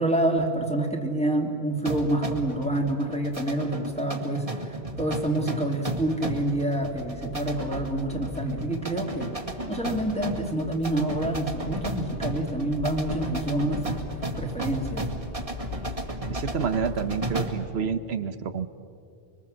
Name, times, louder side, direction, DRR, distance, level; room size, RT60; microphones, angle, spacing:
voice 1, 0.0-9.4 9.7-14.0 14.4-15.1, right 1 dB, 5° left, 1 dB, 2.5 m, -27 dB
sound 1, 1.8-17.7, right 2 dB, 35° right, 2.1 m, -35 dB
Accelerating revving vroom, 6.8-17.3, left 5 dB, 75° left, 1.4 m, -40 dB
voice 2, 16.3-18.7, right 6 dB, 90° right, 11 dB, 1.2 m, -29 dB
24.5 x 23.5 x 7.6 m, 2.5 s
omnidirectional pair, 1.0 m